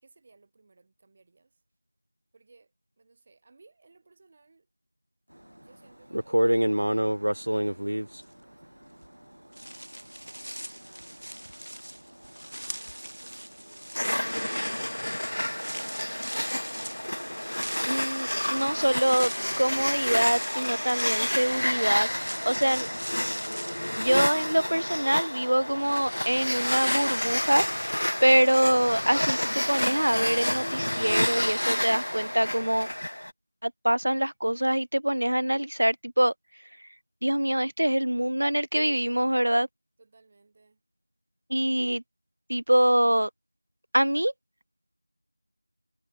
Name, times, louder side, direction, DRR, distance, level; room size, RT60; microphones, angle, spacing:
voice 1, 0.0-1.6 2.3-4.7 5.6-9.0 10.6-11.3 12.8-13.9 40.0-40.8, right 3 dB, 10° right, 4.0 m, -61 dB
sound 1, 5.6-5.7 6.1-9.2 9.6-24.3, equal, 90° right, 1.4 m, -33 dB
sound 2, 13.9-33.3, left 1 dB, 65° left, 0.7 m, -30 dB
voice 2, 17.9-22.1 22.4-22.9 24.0-32.9 33.6-36.3 37.2-39.7 41.5-42.0 42.5-43.3 43.9-44.3, right 1 dB, 55° right, 0.4 m, -25 dB
figure-of-eight pair, 180°, 0 cm